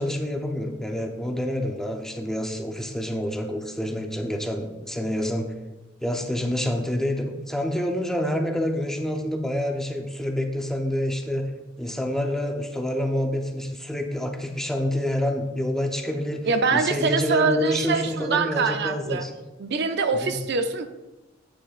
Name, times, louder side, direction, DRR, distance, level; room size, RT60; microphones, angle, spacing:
voice 1, 0.0-5.5 6.0-11.5 11.8-19.3 20.1-20.4, left 1 dB, 5° left, 3 dB, 0.7 m, -27 dB
voice 2, 16.5-19.2 19.6-20.9, right 4 dB, 60° right, 7 dB, 0.6 m, -24 dB
8.8 x 8.6 x 2.5 m, 1.1 s
head